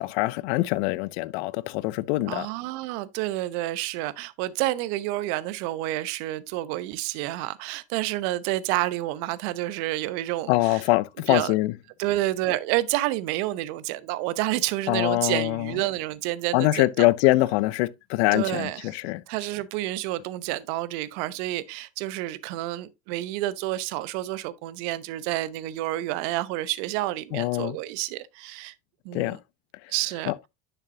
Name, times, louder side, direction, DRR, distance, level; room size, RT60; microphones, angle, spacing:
voice 1, 0.0-2.5 10.5-11.7 14.9-15.7 16.5-19.2 27.3-27.8 29.1-29.4 30.3-30.4, left 19 dB, 60° left, 0.7 m, -24 dB
voice 2, 2.3-10.8 11.3-11.5 12.0-17.1 18.3-18.9 19.3-28.7 29.0-29.4 29.9-30.3, right 16 dB, 60° right, 0.9 m, -29 dB
10.5 x 5.8 x 2.7 m
hypercardioid pair, 85°, 36 cm